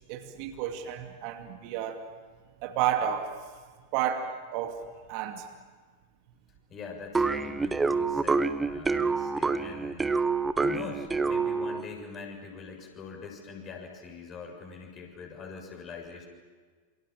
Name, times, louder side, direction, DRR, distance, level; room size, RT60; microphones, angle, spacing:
voice 1, 0.1-2.0 2.6-3.4 3.9-4.8 5.1-5.5, right 10 dB, 45° right, 5 dB, 2.5 m, -31 dB
voice 2, 6.7-10.2 10.6-16.3, left 5 dB, 30° left, 2 dB, 6.9 m, -43 dB
sound 1, 7.1-11.9, right 4 dB, 10° right, 1.1 m, -27 dB
28.0 x 27.5 x 7.4 m, 1.5 s
figure-of-eight pair, 90°, 0 cm